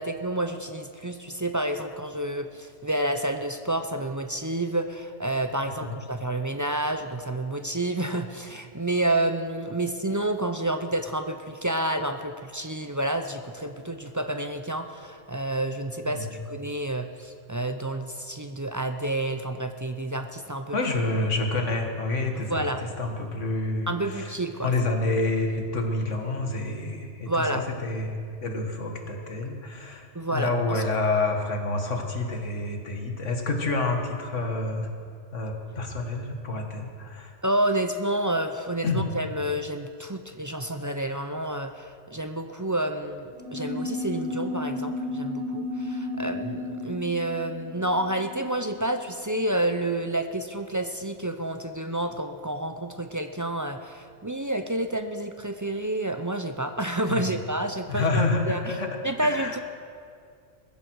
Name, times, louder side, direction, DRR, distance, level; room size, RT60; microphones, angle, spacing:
voice 1, 0.0-20.8 22.5-22.8 23.9-24.7 27.3-27.6 30.1-30.8 37.4-58.7 59.0-59.6, right 1 dB, 25° right, 7 dB, 0.4 m, -29 dB
voice 2, 20.7-22.7 23.0-24.3 24.6-34.9 35.3-37.3 38.8-39.3 57.1-57.4 57.9-59.0 59.2-59.6, left 2 dB, 75° left, 3 dB, 2.0 m, -28 dB
sound 1, 43.3-49.3, left 2 dB, 50° right, 1.8 m, -33 dB
21.0 x 14.5 x 4.7 m, 2.2 s
omnidirectional pair, 1.3 m